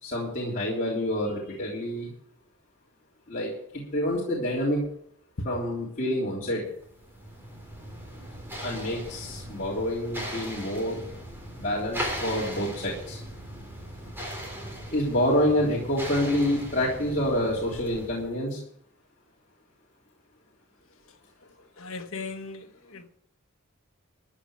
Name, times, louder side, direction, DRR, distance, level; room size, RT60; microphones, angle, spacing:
voice 1, 0.0-2.1 3.3-4.8 5.4-6.7 8.6-11.0 11.6-13.2 14.9-18.6, left 1 dB, 40° left, 3.4 m, -27 dB
sound 1, 6.8-18.3, equal, 10° right, 3.7 m, -38 dB
voice 2, 21.8-22.6 22.9-23.0, left 4 dB, 75° left, 1.4 m, -37 dB
14.0 x 6.6 x 9.0 m
head